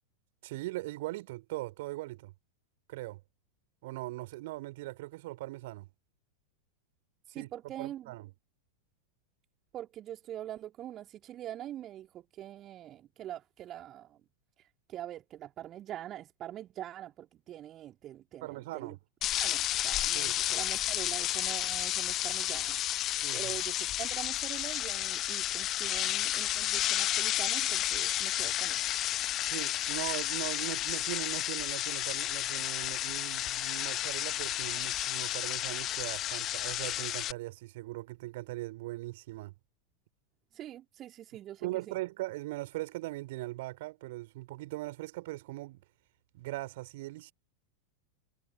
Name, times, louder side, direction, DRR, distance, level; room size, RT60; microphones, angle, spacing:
voice 1, 0.4-2.3 2.9-3.2 3.8-5.9 7.3-7.5 7.8-8.3 18.4-19.0 20.1-20.4 23.1-23.5 29.4-39.5 41.6-45.8 46.3-47.3, right 19 dB, 50° right, 3.1 m, -40 dB
voice 2, 7.3-8.1 9.7-14.2 14.9-19.0 19.4-22.8 23.3-28.8 40.5-42.0, right 12 dB, 30° right, 2.3 m, -44 dB
sound 1, 19.2-37.3, left 13 dB, 35° left, 0.8 m, -32 dB
figure-of-eight pair, 90°, 0 cm